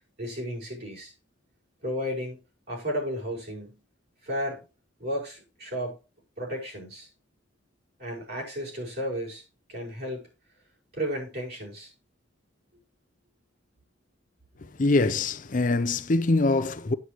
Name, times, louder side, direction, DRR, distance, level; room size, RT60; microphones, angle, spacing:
voice 1, 0.2-1.1 1.8-2.4 2.7-3.8 4.2-4.6 5.0-6.0 6.4-7.1 8.0-9.4 9.7-10.2 10.9-11.9, equal, 55° right, 5.2 m, -33 dB
voice 2, 14.6-16.9, left 2 dB, 40° left, 0.6 m, -24 dB
9.6 x 8.5 x 3.0 m
head